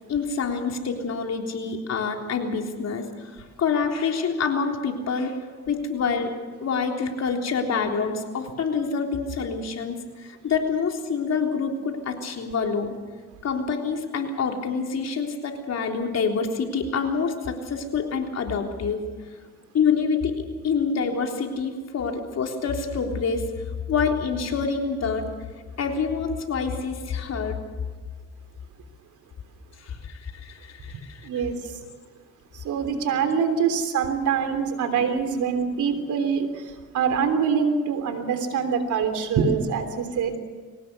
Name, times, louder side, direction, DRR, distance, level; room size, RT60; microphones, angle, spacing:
voice 1, 0.1-13.0 13.4-19.0 19.7-25.4 25.8-27.6 29.8-31.2, left 5 dB, 60° left, 2 dB, 3.7 m, -27 dB
voice 2, 31.2-31.6 32.5-40.4, right 6 dB, 75° right, 8 dB, 3.3 m, -24 dB
23.0 x 18.5 x 6.9 m, 1.5 s
cardioid pair, 90°, 30 cm